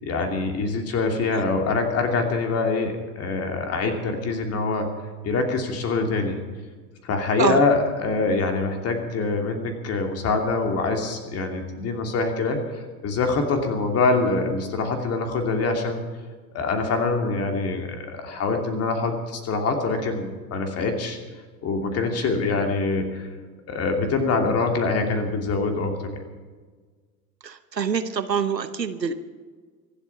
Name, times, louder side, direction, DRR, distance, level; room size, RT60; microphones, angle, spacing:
voice 1, 0.0-4.9 5.2-6.4 7.0-16.0 16.5-21.2 21.6-23.3 23.7-25.9, left 3 dB, 30° left, 4 dB, 2.8 m, -24 dB
voice 2, 27.4-29.1, right 6 dB, 85° right, 11 dB, 1.1 m, -25 dB
24.5 x 8.3 x 5.7 m, 1.5 s
figure-of-eight pair, 85°, 49 cm